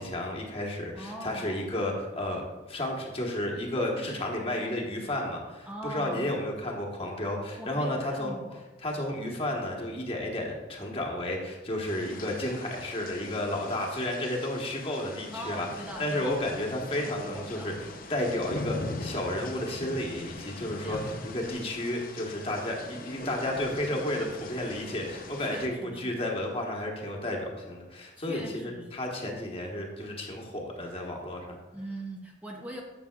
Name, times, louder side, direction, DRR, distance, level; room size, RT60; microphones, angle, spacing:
voice 1, 0.0-8.3 8.8-15.7 16.0-17.7 18.1-31.6, left 1 dB, 30° left, 0 dB, 1.4 m, -32 dB
voice 2, 0.9-1.6 3.9-4.7 5.6-6.4 7.6-8.6 15.3-16.4 17.0-17.7 18.4-18.5 20.5-21.1 25.5-26.2 28.2-29.0 31.7-32.8, right 1 dB, 10° right, -1 dB, 0.7 m, -41 dB
sound 1, 11.9-25.7, left 2 dB, 50° left, 0.8 m, -41 dB
11.5 x 7.3 x 2.4 m, 1.2 s
head